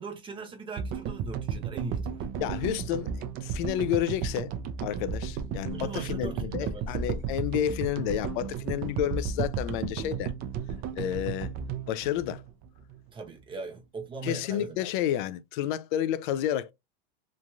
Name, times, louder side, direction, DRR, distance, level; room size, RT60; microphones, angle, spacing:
voice 1, 0.0-2.3 5.7-7.0 13.1-14.8, right 4 dB, 15° right, 0.8 m, -40 dB
sound 1, 0.8-13.1, right 7 dB, 30° right, 0.4 m, -34 dB
voice 2, 2.4-3.1 3.4-4.5 4.8-10.3 10.9-11.5 11.9-12.4 14.2-16.7, left 11 dB, 55° left, 0.4 m, -30 dB
3.2 x 2.5 x 2.2 m
supercardioid pair, 130°, 29 cm